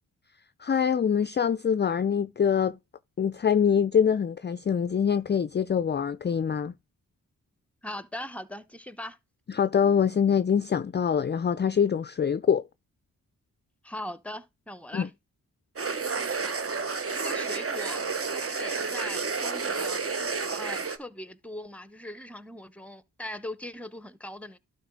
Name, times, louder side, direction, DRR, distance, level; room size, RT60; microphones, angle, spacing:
voice 1, 0.6-2.8 3.2-6.7 9.5-12.6 14.9-15.1, left 7 dB, 30° left, 0.4 m, -24 dB
voice 2, 7.8-9.2 13.8-15.1 16.4-16.5 17.1-18.0 18.3-20.0 20.5-24.6, left 1 dB, 5° left, 0.8 m, -40 dB
sound 1, 15.8-21.0, right 4 dB, 40° right, 1.0 m, -30 dB
12.0 x 4.6 x 3.6 m
cardioid pair, 50°, 35 cm